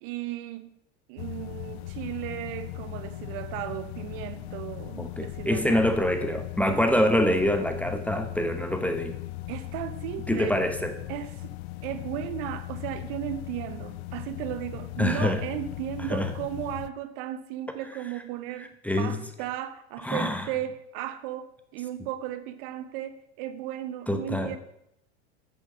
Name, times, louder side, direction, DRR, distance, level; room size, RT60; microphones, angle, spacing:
voice 1, 0.0-0.7 1.1-5.9 9.5-10.6 11.1-11.5 11.8-24.6, right 12 dB, 55° right, 0.9 m, -35 dB
sound 1, 1.2-16.9, left 17 dB, 60° left, 0.6 m, -38 dB
voice 2, 5.0-9.2 10.3-11.0 15.0-15.4 16.1-16.3 18.8-19.2 20.0-20.5 24.1-24.6, left 1 dB, 5° left, 0.8 m, -25 dB
8.3 x 6.8 x 5.4 m
hypercardioid pair, 105°, 35 cm